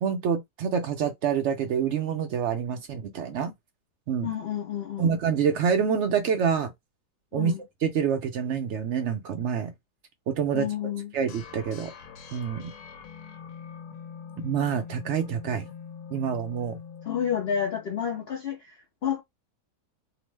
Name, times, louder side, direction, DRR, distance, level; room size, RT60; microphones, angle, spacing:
voice 1, 0.0-3.5 4.1-4.3 5.0-6.7 7.3-7.5 7.8-9.7 10.3-10.7 11.1-11.9 12.3-12.7 14.4-15.7 16.1-16.8, right 7 dB, 70° right, 0.6 m, -27 dB
voice 2, 4.2-5.2 7.3-7.6 10.5-11.1 17.0-19.2, left 8 dB, 80° left, 0.5 m, -30 dB
sound 1, 11.3-18.2, left 6 dB, 65° left, 1.0 m, -44 dB
2.9 x 2.0 x 3.2 m
omnidirectional pair, 1.7 m